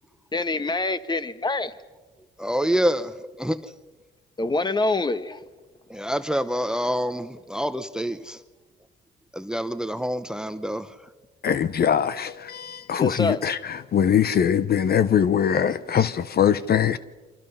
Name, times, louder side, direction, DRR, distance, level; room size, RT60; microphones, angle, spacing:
voice 1, 0.3-1.7 4.4-5.4 13.0-13.4, left 3 dB, 20° left, 1.3 m, -25 dB
voice 2, 2.4-3.7 5.9-8.4 9.3-10.9, equal, 5° right, 0.8 m, -27 dB
voice 3, 11.4-17.0, left 8 dB, 50° left, 0.8 m, -22 dB
29.0 x 25.0 x 5.6 m
cardioid pair, 90°, 20 cm